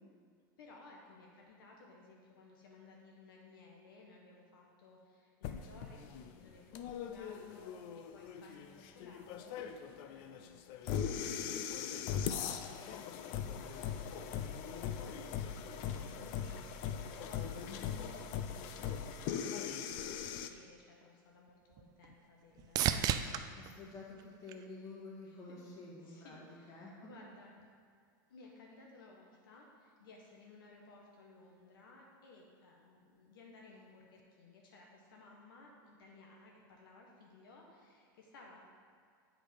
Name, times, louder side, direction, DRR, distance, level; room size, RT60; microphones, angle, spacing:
voice 1, 0.6-10.8 12.2-19.6 19.9-23.0 25.2-25.4 26.0-27.5 28.3-38.7, left 3 dB, 85° left, -1 dB, 1.2 m, -58 dB
sound 1, 5.4-20.5, left 8 dB, 50° left, 0.5 m, -40 dB
sound 2, 21.0-25.2 25.7-26.4 34.2-34.3, right 10 dB, 35° right, 0.4 m, -38 dB
voice 2, 23.5-26.4 26.7-27.1, left 3 dB, 30° left, -4 dB, 2.1 m, -50 dB
7.9 x 4.9 x 5.1 m, 2.1 s
supercardioid pair, 135°, 11 cm